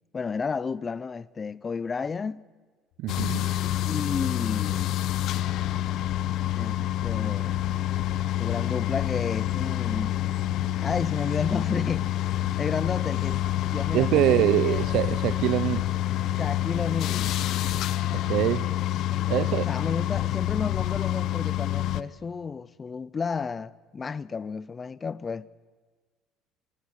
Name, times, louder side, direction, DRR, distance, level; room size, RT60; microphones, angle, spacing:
voice 1, 0.1-2.4 3.8-5.0 6.6-7.7 8.4-10.1 10.8-12.2 12.6-13.4 13.7-15.0 16.4-17.4 19.1-25.5, left 5 dB, 25° left, 0.7 m, -32 dB
voice 2, 3.0-3.5 13.9-15.8 18.1-18.6 19.3-19.6, right 15 dB, 65° right, 0.7 m, -24 dB
sound 1, 3.1-18.4, left 8 dB, 80° left, 4.1 m, -42 dB
sound 2, 3.1-22.0, left 13 dB, 55° left, 0.9 m, -27 dB
28.0 x 19.0 x 9.8 m
cardioid pair, 125°, 0 cm